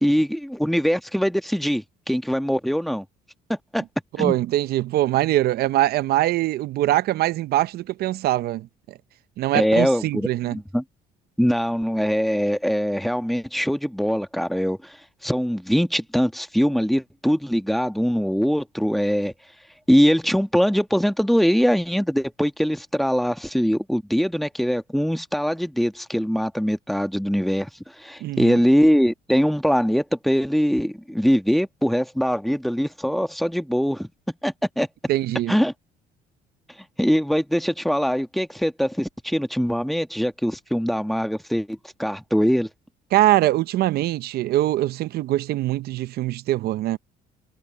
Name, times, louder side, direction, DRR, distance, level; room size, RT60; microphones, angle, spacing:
voice 1, 0.0-3.0 3.5-3.8 4.2-4.4 9.5-10.8 11.4-15.0 15.2-19.3 19.9-27.7 28.0-34.1 34.4-34.9 35.5-35.7 37.0-42.7, equal, ahead, 1.3 m, -22 dB
voice 2, 4.2-9.0 9.4-10.6 28.2-28.6 35.1-35.6 43.1-47.0, right 15 dB, 65° right, 0.6 m, -22 dB
cardioid pair, 110°, 17 cm